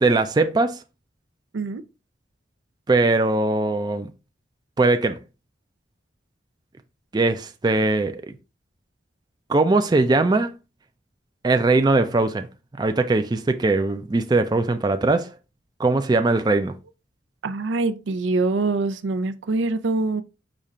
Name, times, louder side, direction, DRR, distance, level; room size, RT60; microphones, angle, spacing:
voice 1, 0.0-0.8 2.9-4.1 4.8-5.2 7.1-8.3 9.5-10.6 11.4-12.5 12.8-15.3 15.8-16.7, right 2 dB, 20° right, 0.4 m, -20 dB
voice 2, 17.4-20.2, right 3 dB, 85° right, 0.5 m, -24 dB
5.1 x 2.4 x 4.2 m
head